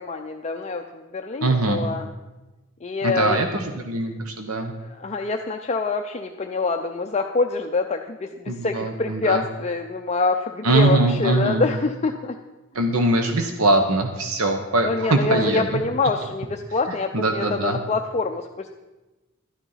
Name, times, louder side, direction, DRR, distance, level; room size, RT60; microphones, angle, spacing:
voice 1, 0.0-2.1 2.8-3.4 4.8-12.4 14.8-18.7, left 3 dB, 30° left, 4 dB, 0.5 m, -26 dB
voice 2, 1.4-1.8 3.0-4.7 8.5-9.4 10.6-11.6 12.7-15.8 17.1-17.8, right 2 dB, 90° right, 6 dB, 1.1 m, -22 dB
13.0 x 9.5 x 5.7 m, 1.1 s
head